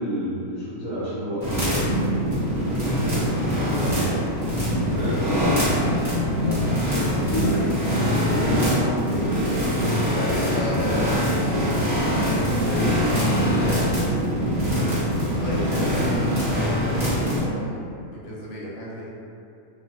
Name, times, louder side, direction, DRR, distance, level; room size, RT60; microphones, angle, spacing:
voice 1, 0.0-2.2 2.6-3.2 3.4-4.3 4.9-5.6 7.1-7.8 8.2-10.1, equal, 15° left, -13 dB, 1.1 m, -30 dB
sound 1, 1.4-17.4, equal, 30° right, 1.0 m, -23 dB
voice 2, 6.3-6.7 7.4-7.7 10.1-11.7 12.4-14.3 14.6-17.8 18.1-19.1, left 1 dB, 70° left, -6 dB, 0.9 m, -34 dB
2.6 x 2.2 x 2.6 m, 2.6 s
omnidirectional pair, 1.6 m